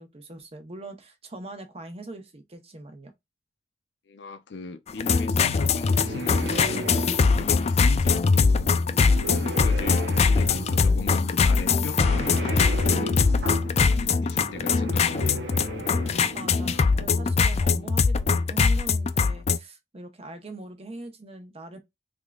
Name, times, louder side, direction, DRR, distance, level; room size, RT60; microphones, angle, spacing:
voice 1, 0.0-3.1 16.3-21.8, right 2 dB, 35° right, 0.9 m, -42 dB
voice 2, 4.1-6.9 7.4-8.7 9.4-10.0 10.3-13.2 13.6-15.5, left 4 dB, 85° left, 0.6 m, -38 dB
sound 1, 4.9-19.6, left 5 dB, 35° left, 0.4 m, -22 dB
sound 2, 5.5-17.3, right 1 dB, 90° right, 0.9 m, -36 dB
3.6 x 3.5 x 2.3 m
head